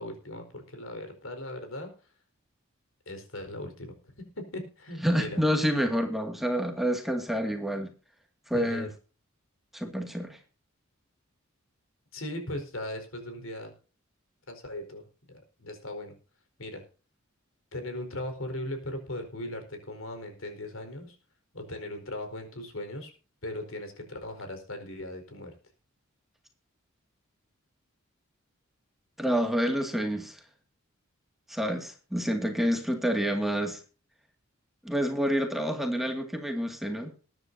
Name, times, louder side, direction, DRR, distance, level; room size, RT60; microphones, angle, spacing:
voice 1, 0.0-1.9 3.1-5.4 8.5-8.9 12.1-13.7 14.5-15.0 15.3-16.1 16.6-16.8 17.7-21.2 21.5-23.1 23.4-25.5, left 1 dB, 70° left, 6 dB, 4.7 m, -38 dB
voice 2, 5.0-7.9 8.5-8.9 9.7-10.4 29.2-30.4 31.5-33.8 34.8-37.1, equal, ahead, 4 dB, 2.1 m, -28 dB
20.5 x 10.5 x 2.7 m, 0.35 s
head